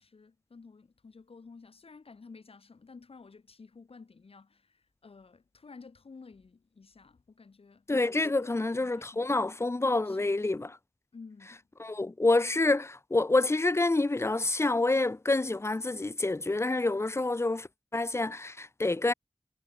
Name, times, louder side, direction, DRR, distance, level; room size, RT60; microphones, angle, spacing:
voice 1, 0.0-7.9 8.4-9.6 10.0-10.8 11.1-11.7, left 4 dB, 80° left, 4.9 m, -52 dB
voice 2, 7.9-10.7 11.8-19.1, left 2 dB, 25° left, 0.6 m, -27 dB
wide cardioid pair, 65°, 10 cm